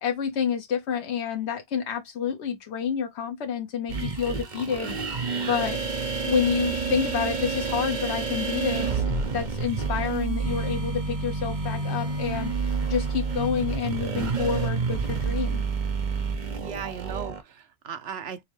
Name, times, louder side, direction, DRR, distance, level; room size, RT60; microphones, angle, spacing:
voice 1, 0.0-4.9 5.4-5.8 6.2-9.0 9.3-15.6, left 7 dB, 80° left, 1.1 m, -29 dB
sound 1, 3.9-17.4, right 4 dB, 45° right, 1.0 m, -29 dB
voice 2, 16.6-18.4, right 8 dB, 70° right, 1.0 m, -37 dB
5.2 x 2.1 x 3.2 m
omnidirectional pair, 1.1 m